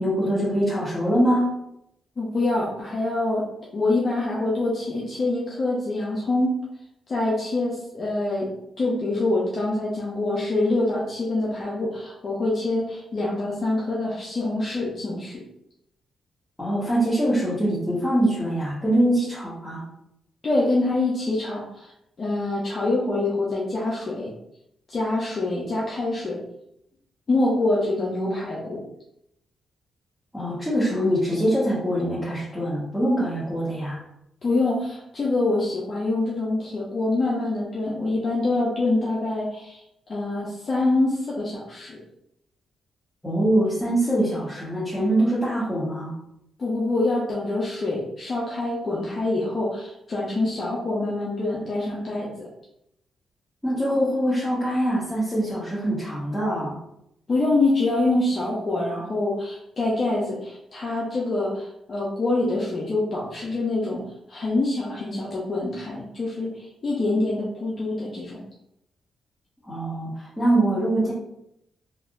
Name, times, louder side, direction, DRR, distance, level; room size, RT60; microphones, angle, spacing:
voice 1, 0.0-1.5 16.6-19.8 30.3-34.0 43.2-46.2 53.6-56.8 69.7-71.1, right 1 dB, 5° left, -10 dB, 1.5 m, -23 dB
voice 2, 2.2-6.6 7.1-15.4 20.4-21.9 22.2-24.3 24.9-26.4 27.3-28.8 34.4-39.8 40.1-42.0 46.6-52.5 57.3-68.4, left 2 dB, 50° left, -5 dB, 0.7 m, -25 dB
3.4 x 2.5 x 2.5 m, 0.79 s
supercardioid pair, 50°, 0 cm